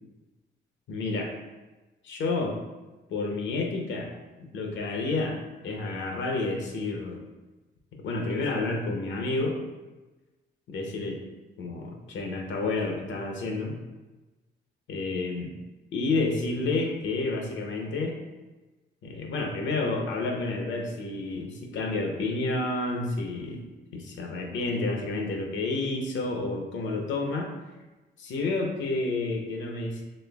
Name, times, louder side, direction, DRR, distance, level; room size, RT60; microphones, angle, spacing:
voice 1, 0.9-1.3 2.0-2.6 3.1-4.1 4.4-7.2 8.0-9.6 10.7-11.2 11.6-13.8 14.9-15.5 15.9-18.2 19.0-23.6 23.9-27.5 28.2-30.0, left 3 dB, 70° left, 2 dB, 0.7 m, -30 dB
4.3 x 3.1 x 2.3 m, 1.1 s
cardioid pair, 90°, 20 cm